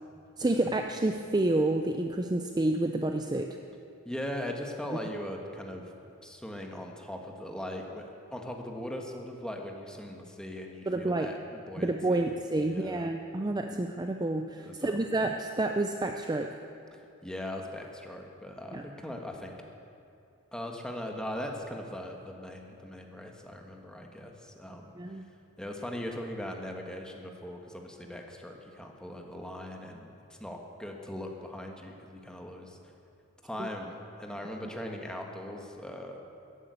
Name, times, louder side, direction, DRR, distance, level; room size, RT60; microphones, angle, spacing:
voice 1, 0.4-3.6 10.9-11.3 11.8-16.6 18.7-18.8 25.0-25.3 33.6-33.7, right 2 dB, 20° right, 5 dB, 0.5 m, -29 dB
voice 2, 4.0-5.8 6.2-12.4 12.6-13.1 14.6-15.0 16.9-19.5 20.5-24.9 25.6-30.1 30.4-32.9 33.4-36.2, left 1 dB, 5° left, 2 dB, 1.5 m, -40 dB
14.0 x 11.0 x 8.3 m, 2.6 s
head